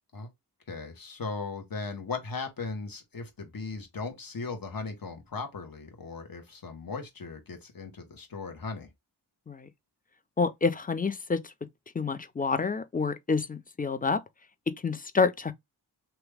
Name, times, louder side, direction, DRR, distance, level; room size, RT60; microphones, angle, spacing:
voice 1, 0.7-8.9, left 4 dB, 55° left, 1.2 m, -37 dB
voice 2, 10.4-11.5 11.9-14.2 14.8-15.5, left 4 dB, 20° left, 0.5 m, -28 dB
2.9 x 2.3 x 3.3 m
wide cardioid pair, 75°, 40 cm